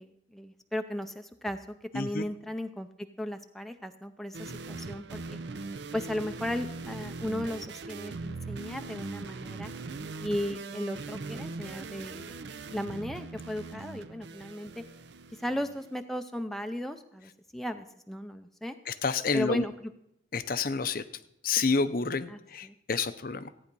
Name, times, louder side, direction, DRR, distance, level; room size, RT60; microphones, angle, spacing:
voice 1, 0.0-1.6 1.9-5.4 5.9-9.7 10.2-12.3 12.7-14.8 15.4-18.8 19.3-19.7 22.3-22.7, left 1 dB, ahead, 6 dB, 0.5 m, -36 dB
voice 2, 1.9-2.2 18.9-19.6 20.3-21.0 21.4-23.5, left 4 dB, 45° left, 12 dB, 0.6 m, -29 dB
sound 1, 4.3-15.9, right 3 dB, 60° right, 0.6 m, -40 dB
14.5 x 9.3 x 5.3 m, 0.77 s
head